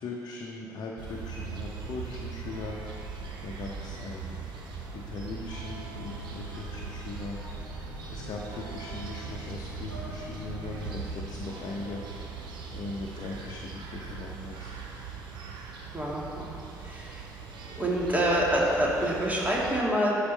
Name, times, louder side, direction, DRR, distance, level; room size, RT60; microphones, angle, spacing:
voice 1, 0.0-3.1 3.4-4.4 4.9-7.4 8.1-12.0 12.7-14.7, left 3 dB, 45° left, -2 dB, 0.9 m, -39 dB
sound 1, 1.0-19.8, right 5 dB, 50° right, 1.2 m, -41 dB
sound 2, 5.9-13.2, equal, 90° right, 1.2 m, -43 dB
voice 2, 15.9-16.6 16.8-17.2 17.8-20.2, equal, 15° right, -4 dB, 2.5 m, -27 dB
11.5 x 5.1 x 5.5 m, 2.6 s
figure-of-eight pair, 45°, 10 cm